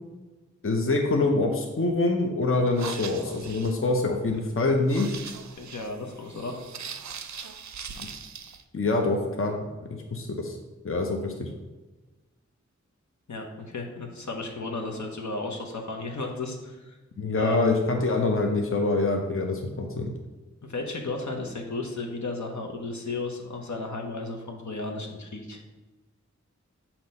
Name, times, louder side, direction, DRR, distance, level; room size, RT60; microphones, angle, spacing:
voice 1, 0.6-5.2 8.0-8.1 8.7-9.6 10.1-10.6 10.8-11.5 17.2-20.1, left 2 dB, 45° left, 2 dB, 0.7 m, -25 dB
sound 1, 2.6-8.6, right 6 dB, 70° right, 0.4 m, -41 dB
voice 2, 5.6-6.6 13.3-17.0 17.4-17.8 20.6-25.6, left 3 dB, 75° left, 1 dB, 0.9 m, -34 dB
5.9 x 2.9 x 5.4 m, 1.2 s
wide cardioid pair, 50°, 30 cm